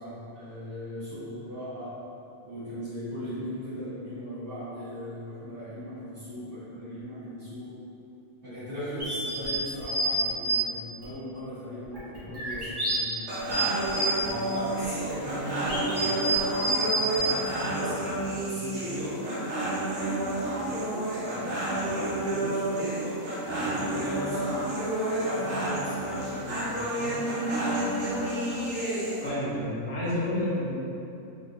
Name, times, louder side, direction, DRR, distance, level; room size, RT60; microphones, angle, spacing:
voice 1, 0.0-1.9 2.4-7.7 8.4-13.3 14.1-18.0 18.4-19.4 20.0-23.0 23.5-27.3, equal, 45° right, -14 dB, 1.9 m, -38 dB
sound 1, 9.0-10.6 11.0-11.1 11.8-13.0 13.4-14.3 14.8-17.3, right 2 dB, 20° right, 1.0 m, -28 dB
sound 2, 13.3-29.3, right 1 dB, 60° right, 1.2 m, -30 dB
voice 2, 29.2-30.7, left 1 dB, 75° left, -8 dB, 1.3 m, -30 dB
3.7 x 3.5 x 2.6 m, 2.8 s
omnidirectional pair, 1.4 m